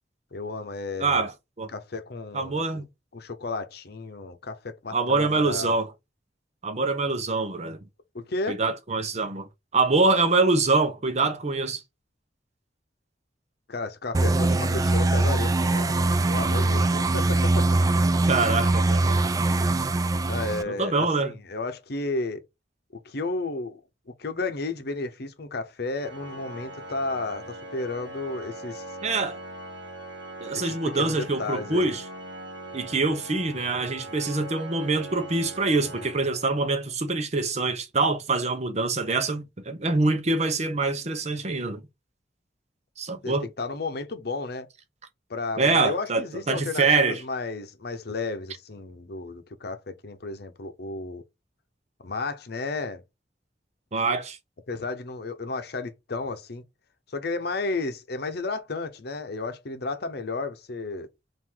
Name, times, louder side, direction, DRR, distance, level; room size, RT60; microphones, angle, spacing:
voice 1, 0.3-1.3 1.7-2.8 3.1-5.8 8.1-8.6 13.7-17.8 20.2-22.4 23.0-23.8 24.2-28.8 30.5-31.9 43.2-44.7 45.3-51.2 52.0-53.0 54.7-56.6 57.1-61.1, left 3 dB, 65° left, 0.8 m, -33 dB
voice 2, 1.0-1.3 1.6-1.7 2.3-2.8 4.9-5.9 6.6-7.8 8.5-9.5 9.7-11.8 14.5-14.8 18.3-19.2 20.7-21.3 29.0-29.4 30.4-32.0 32.7-41.8 43.0-43.5 45.6-47.2 53.9-54.4, right 3 dB, 40° right, 0.7 m, -25 dB
sound 1, 14.1-20.6, right 2 dB, 20° right, 0.3 m, -22 dB
Organ, 26.0-36.9, right 2 dB, 85° right, 1.0 m, -41 dB
3.8 x 2.6 x 4.5 m
head